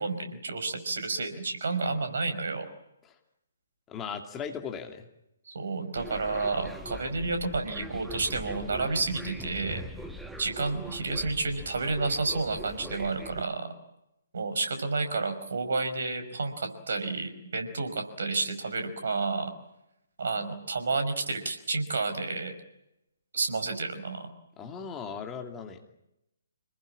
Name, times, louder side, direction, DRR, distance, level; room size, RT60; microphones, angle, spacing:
voice 1, 0.0-2.7 5.5-9.8 10.4-13.7 14.3-19.5 20.2-22.5 23.3-24.3, right 3 dB, 55° right, 7 dB, 5.3 m, -30 dB
voice 2, 3.9-5.1 24.6-25.9, left 6 dB, 15° left, 4 dB, 2.6 m, -38 dB
sound 1, 5.9-13.4, right 1 dB, ahead, 1.5 m, -42 dB
28.5 x 20.0 x 8.6 m, 0.86 s
figure-of-eight pair, 135°, 0 cm